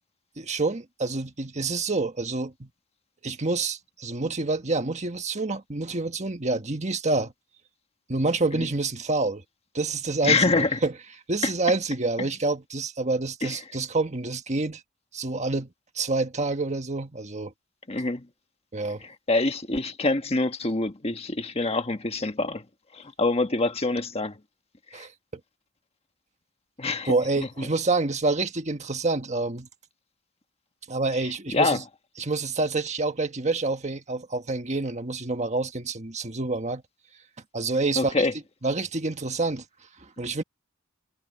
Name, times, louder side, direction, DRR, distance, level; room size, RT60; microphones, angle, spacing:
voice 1, 0.4-2.7 3.2-7.3 8.1-9.4 9.7-10.9 11.3-14.8 15.1-15.7 15.9-17.5 18.7-19.0 24.9-25.1 27.0-29.7 30.9-31.8 32.2-36.8 37.5-38.3 38.6-39.6 40.0-40.4, right 3 dB, 35° right, 1.5 m, -27 dB
voice 2, 10.2-10.8 11.4-11.5 12.2-12.3 13.4-13.6 17.9-18.3 19.0-22.6 22.9-24.4 24.9-25.1 26.8-27.5 31.5-31.8 38.0-38.3, left 3 dB, 30° left, 1.4 m, -25 dB
head